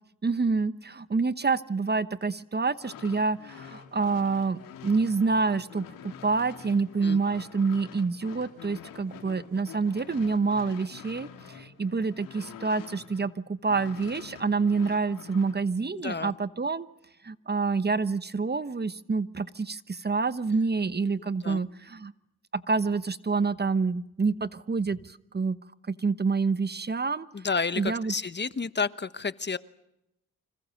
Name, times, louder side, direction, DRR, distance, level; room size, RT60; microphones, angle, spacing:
voice 1, 0.2-16.9 17.2-22.1 22.5-25.6 25.9-27.3 27.8-28.1, right 4 dB, 30° right, 14 dB, 1.1 m, -27 dB
sound 1, 2.7-13.3 13.6-15.6, left 8 dB, 90° left, 3.3 m, -46 dB
voice 2, 15.9-16.3 21.4-21.6 27.3-29.6, left 5 dB, 30° left, 14 dB, 1.1 m, -30 dB
29.0 x 26.0 x 6.6 m, 0.85 s
supercardioid pair, 55°, 33 cm